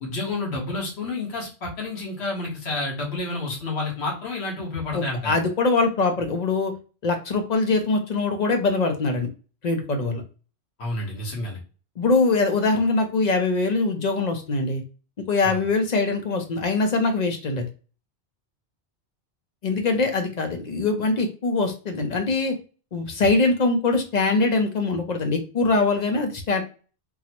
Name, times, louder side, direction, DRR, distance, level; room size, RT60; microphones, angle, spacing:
voice 1, 0.0-5.4 10.8-11.6 15.4-15.6, left 2 dB, 75° left, -1 dB, 1.4 m, -30 dB
voice 2, 4.9-6.7 7.0-9.3 9.6-10.2 12.0-14.8 15.3-17.7 19.6-22.6 22.9-26.6, left 3 dB, 50° left, 5 dB, 0.6 m, -23 dB
3.9 x 2.0 x 2.8 m, 0.35 s
omnidirectional pair, 1.1 m